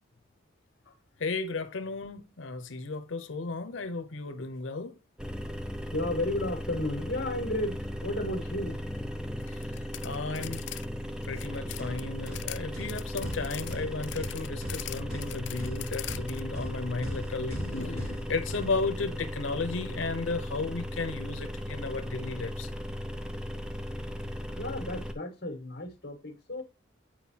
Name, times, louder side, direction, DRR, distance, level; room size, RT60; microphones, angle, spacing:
voice 1, 1.2-4.9 9.5-9.6 10.0-10.6 11.3-22.7, left 3 dB, 85° left, 0.8 m, -34 dB
sound 1, 5.2-25.1, equal, 5° right, 0.5 m, -37 dB
voice 2, 5.9-8.8 24.6-26.6, left 1 dB, 50° left, 1.8 m, -33 dB
sound 2, 9.4-10.8 11.1-12.6 12.9-16.4, left 15 dB, 70° left, 0.3 m, -41 dB
sound 3, 11.3-19.3, equal, 50° right, 1.7 m, -41 dB
8.9 x 4.7 x 2.8 m
head